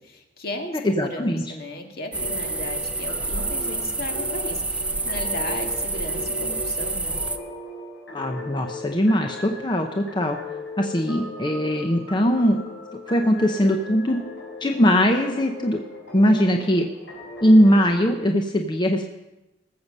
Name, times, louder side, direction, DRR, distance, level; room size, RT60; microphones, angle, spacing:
voice 1, 0.0-7.2, left 2 dB, 60° left, 3 dB, 1.8 m, -36 dB
voice 2, 0.8-1.4 8.1-10.4 10.8-12.6 13.1-14.2 14.6-15.8 16.1-16.9 17.4-19.1, equal, 25° left, 3 dB, 0.7 m, -20 dB
sound 1, 2.1-17.8, left 1 dB, 80° left, 4.9 m, -38 dB
sound 2, 2.1-7.4, right 3 dB, 5° right, 0.6 m, -28 dB
19.5 x 7.7 x 5.4 m, 1.0 s
head